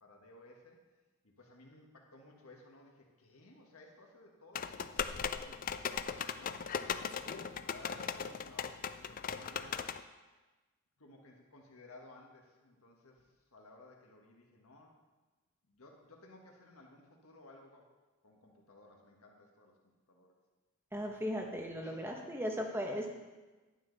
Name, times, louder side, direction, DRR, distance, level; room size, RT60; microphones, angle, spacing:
voice 1, 0.0-0.8 1.2-7.4 7.7-9.9 11.0-14.9 15.7-17.9 18.2-19.7 20.1-20.3 21.8-22.3 22.8-23.1, left 2 dB, 75° left, 0 dB, 1.5 m, -58 dB
sound 1, 4.5-10.0, left 7 dB, 40° left, 0.3 m, -38 dB
voice 2, 20.9-23.1, equal, 10° right, 2 dB, 1.0 m, -37 dB
11.5 x 8.9 x 4.0 m, 1.2 s
head